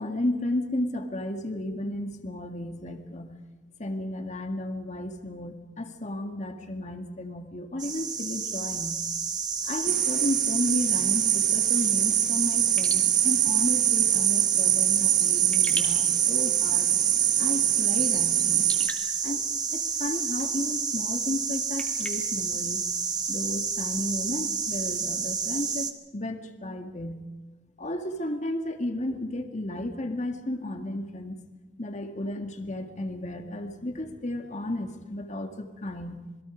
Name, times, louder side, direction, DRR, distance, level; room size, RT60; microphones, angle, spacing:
voice 1, 0.0-3.3 3.8-9.0 9.6-16.9 17.4-18.7 19.2-19.5 19.7-22.8 23.3-25.9 26.1-27.2 27.8-31.4 31.8-36.2, left 1 dB, 40° left, 5 dB, 2.0 m, -33 dB
sound 1, 7.8-25.9, right 5 dB, 25° right, 1.5 m, -30 dB
sound 2, 9.9-18.9, right 12 dB, 55° right, 1.2 m, -24 dB
Raindrop / Drip, 12.6-23.4, left 1 dB, 5° left, 2.5 m, -44 dB
27.5 x 21.5 x 5.1 m, 1.2 s
head